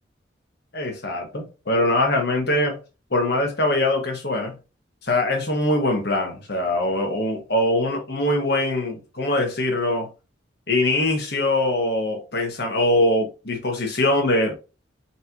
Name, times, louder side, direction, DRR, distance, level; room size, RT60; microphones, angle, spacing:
voice 1, 0.7-2.8 3.1-4.5 5.0-10.1 10.7-14.5, left 1 dB, 55° left, 1.3 m, -22 dB
4.2 x 3.2 x 2.8 m
head